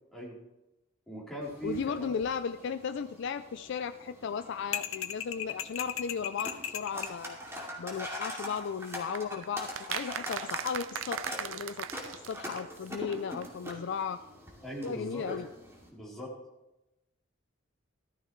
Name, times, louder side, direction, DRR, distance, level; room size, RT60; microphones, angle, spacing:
voice 1, 1.1-2.2 14.6-15.2 15.9-16.3, right 1 dB, ahead, -6 dB, 3.6 m, -40 dB
sound 1, 1.4-15.9, equal, 15° right, 2.4 m, -44 dB
voice 2, 1.6-7.4 7.8-11.9 12.3-14.2 14.8-15.5, left 6 dB, 65° left, 10 dB, 0.4 m, -35 dB
sound 2, 4.7-7.2, left 10 dB, 85° left, 0.7 m, -36 dB
sound 3, 9.2-12.9 13.1-13.2 13.4-13.5 13.7-13.8, right 9 dB, 75° right, 0.5 m, -38 dB
14.0 x 13.0 x 3.1 m, 0.95 s
head